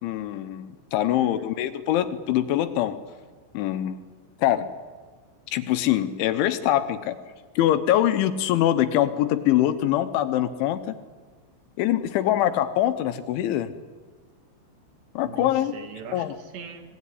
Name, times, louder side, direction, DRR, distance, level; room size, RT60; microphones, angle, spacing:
voice 1, 0.0-3.0 3.5-4.0 4.4-4.7 5.5-7.2 7.6-10.8 11.8-13.7 15.2-15.7 16.1-16.3, left 12 dB, 75° left, 11 dB, 3.2 m, -23 dB
voice 2, 15.2-17.0, right 6 dB, 65° right, 6 dB, 4.1 m, -41 dB
25.5 x 19.5 x 9.8 m, 1.4 s
omnidirectional pair, 5.8 m